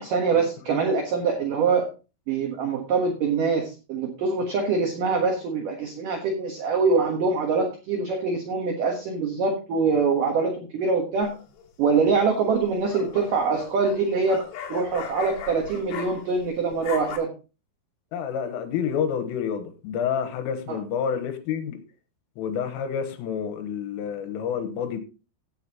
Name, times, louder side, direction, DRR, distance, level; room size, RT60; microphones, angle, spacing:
voice 1, 0.0-1.9 2.3-11.3 11.8-14.4 14.7-17.3 20.7-20.8, right 4 dB, 65° right, 2.2 m, -24 dB
sound 1, 11.2-11.7 12.5-16.5 16.7-17.2, left 7 dB, 65° left, 4.1 m, -38 dB
voice 2, 18.1-21.8 22.4-25.0, left 7 dB, 85° left, 3.9 m, -29 dB
16.0 x 7.9 x 3.0 m
omnidirectional pair, 5.8 m